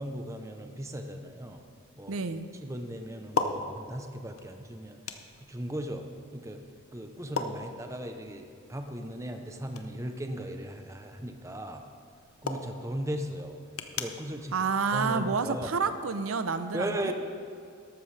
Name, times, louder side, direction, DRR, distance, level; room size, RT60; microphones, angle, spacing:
voice 1, 0.0-1.6 2.0-2.2 2.6-5.0 5.4-6.1 6.3-6.6 6.9-11.8 12.4-13.6 13.9-14.5 14.9-15.7 16.7-17.1, right 1 dB, 15° right, 5 dB, 0.6 m, -37 dB
sound 1, 0.6-15.8, left 4 dB, 85° left, 0.8 m, -41 dB
voice 2, 2.1-2.5 14.5-17.1, right 5 dB, 85° right, 10 dB, 0.6 m, -29 dB
13.0 x 12.5 x 3.3 m, 2.4 s
head